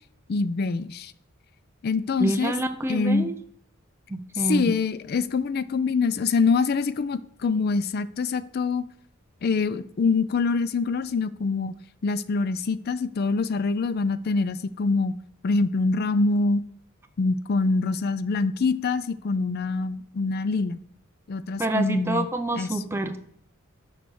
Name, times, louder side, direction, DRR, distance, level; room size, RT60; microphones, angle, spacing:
voice 1, 0.3-1.1 1.8-2.5 2.9-3.3 4.3-8.9 9.4-11.7 12.0-15.2 15.4-16.6 17.2-20.8 21.3-22.3 22.5-22.7, left 4 dB, 50° left, 0.4 m, -25 dB
voice 2, 2.2-3.3 4.1-4.7 21.6-23.2, right 1 dB, 10° right, 0.5 m, -27 dB
6.9 x 4.5 x 6.2 m
head